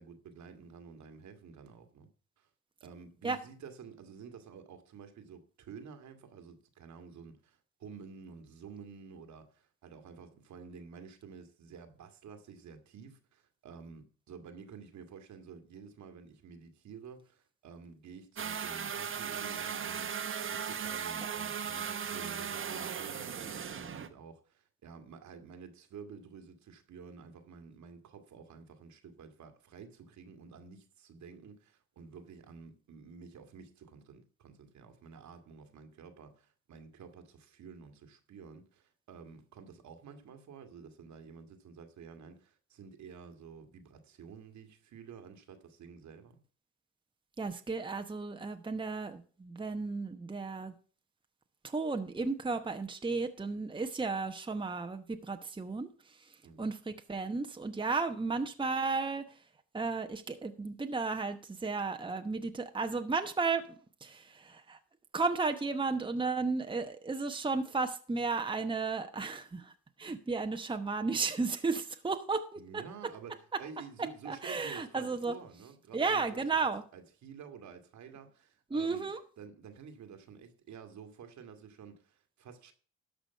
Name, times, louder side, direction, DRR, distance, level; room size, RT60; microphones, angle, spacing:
voice 1, 0.0-2.1 2.4-2.5 2.8-46.4 56.4-56.7 72.6-82.7, right 6 dB, 70° right, 1.9 m, -51 dB
sound 1, 18.4-24.1, right 7 dB, 45° right, 1.2 m, -37 dB
voice 2, 47.4-50.7 51.6-59.3 59.7-64.8 65.1-69.7 70.0-72.8 74.0-75.4 75.9-76.8 78.7-79.2, right 4 dB, 15° right, 1.1 m, -34 dB
13.0 x 5.1 x 6.7 m
cardioid pair, 90°, 30 cm